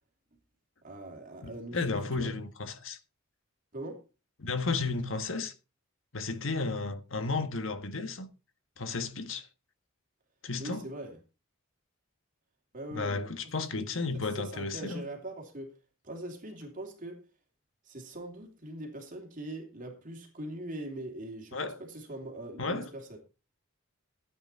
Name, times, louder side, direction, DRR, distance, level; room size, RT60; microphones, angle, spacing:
voice 1, 0.8-2.3 3.7-4.0 10.6-11.2 12.7-13.5 13.8-13.9 14.3-15.8 16.0-17.2 17.8-23.2, right 1 dB, 40° right, 3.0 m, -42 dB
voice 2, 1.4-3.0 4.4-5.5 6.1-8.3 8.8-9.5 10.4-10.8 12.9-15.0 21.5-21.8 22.6-22.9, left 3 dB, 70° left, 1.5 m, -33 dB
13.0 x 8.9 x 4.3 m
head